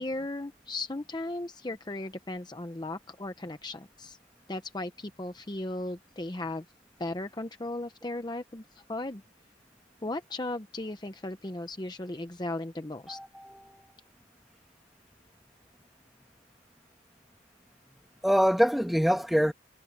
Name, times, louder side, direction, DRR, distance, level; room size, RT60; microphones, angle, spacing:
voice 1, 0.0-4.2 4.5-6.6 7.0-9.2 10.0-13.2, left 2 dB, 20° left, 0.8 m, -36 dB
voice 2, 13.1-13.8 18.2-19.5, equal, ahead, 1.3 m, -25 dB
head